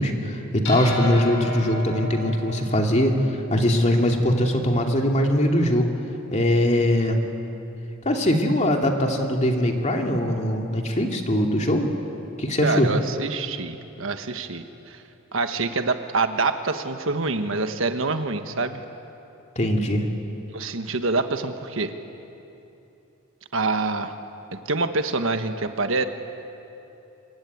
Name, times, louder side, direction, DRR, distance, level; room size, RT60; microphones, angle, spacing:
voice 1, 0.0-3.2 3.5-5.9 6.3-7.2 8.0-11.9 12.4-12.9 19.6-20.1, left 1 dB, 35° left, 2 dB, 2.5 m, -21 dB
sound 1, 0.6-5.3, left 2 dB, 65° left, 7.5 m, -34 dB
voice 2, 12.6-15.0 15.3-18.8 20.5-21.9 23.5-24.1 24.5-26.0, right 3 dB, 65° right, 8 dB, 1.4 m, -26 dB
26.0 x 22.5 x 9.5 m, 2.9 s
head